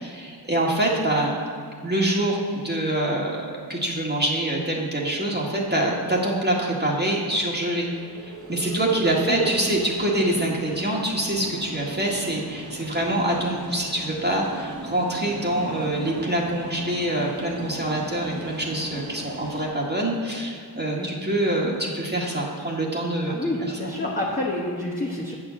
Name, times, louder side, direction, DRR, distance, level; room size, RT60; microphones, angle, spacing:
voice 1, 0.0-1.4 1.8-7.9 8.5-23.5, right 1 dB, 25° right, -3 dB, 1.7 m, -25 dB
sound 1, 6.8-19.7, right 1 dB, 45° right, 1.5 m, -38 dB
voice 2, 23.3-25.3, left 1 dB, 20° left, -3 dB, 1.2 m, -28 dB
8.1 x 4.9 x 7.0 m, 2.3 s
cardioid pair, 45°, 43 cm